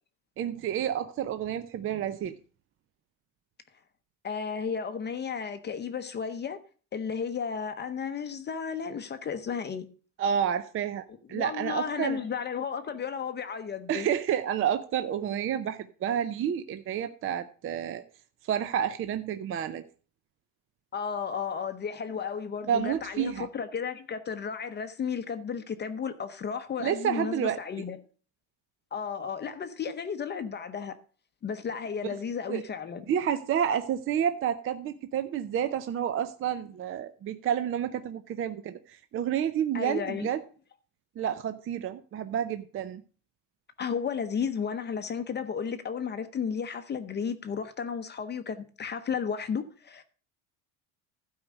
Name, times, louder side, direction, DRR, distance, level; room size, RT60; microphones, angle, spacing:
voice 1, 0.4-2.4 10.2-12.2 13.9-18.0 18.4-19.8 22.7-23.5 26.8-27.6 32.5-32.6 33.1-40.4 41.2-43.0, right 9 dB, 35° right, 0.6 m, -30 dB
voice 2, 4.2-6.6 6.9-9.8 11.3-14.1 20.9-28.0 28.9-31.0 31.4-33.0 39.7-40.3 43.8-50.0, left 6 dB, 25° left, 0.7 m, -33 dB
12.0 x 4.8 x 6.4 m
cardioid pair, 130°, 38 cm